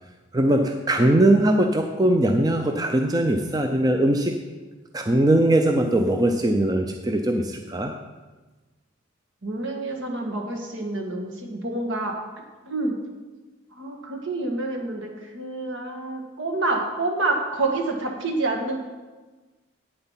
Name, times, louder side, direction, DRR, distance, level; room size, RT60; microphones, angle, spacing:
voice 1, 0.3-4.4 4.9-7.9, right 1 dB, 20° right, 4 dB, 0.5 m, -20 dB
voice 2, 9.4-12.1 12.7-13.0 13.7-18.8, right 2 dB, 70° right, 2 dB, 1.6 m, -28 dB
8.9 x 7.8 x 5.7 m, 1.3 s
head